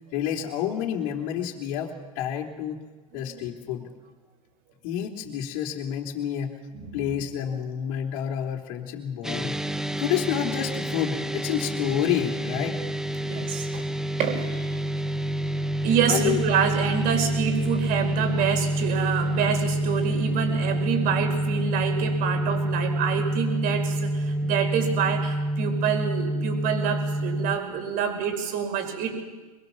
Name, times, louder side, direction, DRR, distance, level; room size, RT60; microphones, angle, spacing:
voice 1, 0.1-2.8 3.1-3.9 4.8-6.5 6.9-9.6 10.0-12.8 16.1-16.4, left 10 dB, 55° left, -1 dB, 3.5 m, -29 dB
voice 2, 3.1-3.5 6.7-7.1 13.2-13.9 14.2-14.8 15.8-29.1, right 7 dB, 45° right, 5 dB, 5.4 m, -27 dB
sound 1, 9.2-27.6, right 1 dB, ahead, 0.9 m, -27 dB
24.0 x 22.5 x 7.2 m, 1.3 s
hypercardioid pair, 110°, 20 cm